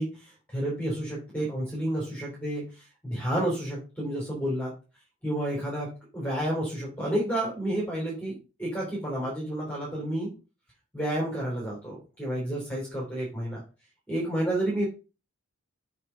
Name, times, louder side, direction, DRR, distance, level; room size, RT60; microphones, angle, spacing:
voice 1, 0.0-4.7 5.2-10.3 10.9-13.6 14.1-14.8, right 1 dB, 5° left, -5 dB, 3.4 m, -30 dB
7.9 x 5.0 x 5.6 m, 0.32 s
head